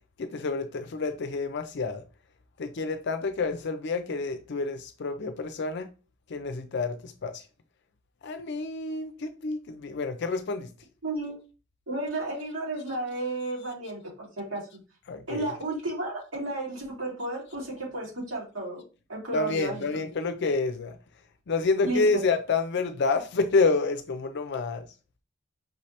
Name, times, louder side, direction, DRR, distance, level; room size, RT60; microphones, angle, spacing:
voice 1, 0.2-2.0 2.6-5.9 6.3-7.4 8.2-10.7 15.1-15.5 19.3-21.0 21.5-24.8, left 3 dB, 55° left, 0.5 m, -28 dB
voice 2, 11.0-11.4 11.9-14.8 15.3-18.8 19.1-19.7 21.8-22.2, right 2 dB, 80° right, 2.7 m, -33 dB
5.4 x 3.2 x 2.8 m
head